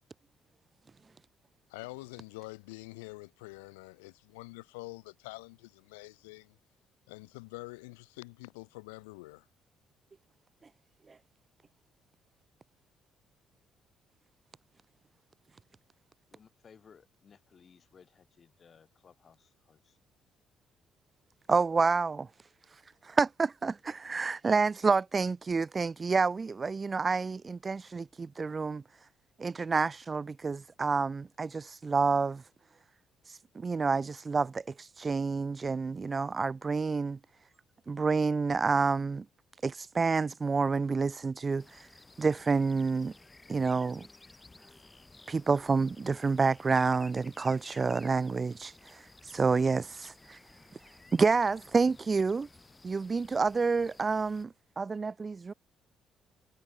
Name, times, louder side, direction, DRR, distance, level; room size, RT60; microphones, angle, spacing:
voice 1, 1.7-6.6 7.1-9.5, left 26 dB, 75° left, 2.6 m, -46 dB
voice 2, 16.3-20.0, left 6 dB, 45° left, 5.9 m, -60 dB
voice 3, 21.5-22.3 23.0-28.8 29.4-32.4 33.3-37.2 37.9-39.2 39.6-41.9 42.2-43.1 43.5-44.1 45.3-50.4 51.1-52.5 52.8-55.5, right 4 dB, 35° right, 0.5 m, -29 dB
sound 1, 41.6-54.4, left 3 dB, 20° left, 5.9 m, -56 dB
hypercardioid pair, 45°, 0 cm